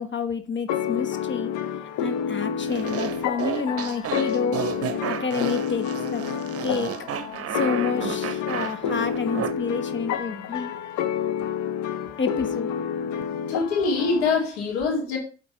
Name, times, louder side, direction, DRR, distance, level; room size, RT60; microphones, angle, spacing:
voice 1, 0.0-1.5 2.0-4.6 5.1-6.2 6.6-6.9 7.5-10.7 12.2-12.7, left 5 dB, 35° left, 1.1 m, -29 dB
sound 1, 0.7-14.4, left 8 dB, 65° left, 0.9 m, -29 dB
sound 2, 2.7-9.5, right 10 dB, 50° right, 0.7 m, -32 dB
voice 2, 13.5-15.2, left 4 dB, 90° left, 2.3 m, -24 dB
8.7 x 3.9 x 4.8 m
hypercardioid pair, 55°, 32 cm